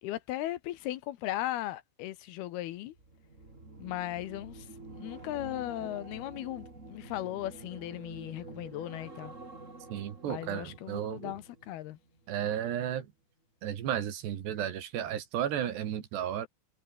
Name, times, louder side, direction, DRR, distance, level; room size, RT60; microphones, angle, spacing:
voice 1, 0.0-2.9 3.8-4.7 4.9-9.4 10.2-12.0, left 14 dB, 75° left, 2.8 m, -37 dB
sound 1, 2.9-12.3 12.6-12.9, right 2 dB, 20° right, 4.0 m, -48 dB
voice 2, 9.9-11.4 12.3-13.1 13.6-16.5, right 10 dB, 75° right, 4.5 m, -33 dB
omnidirectional pair, 4.8 m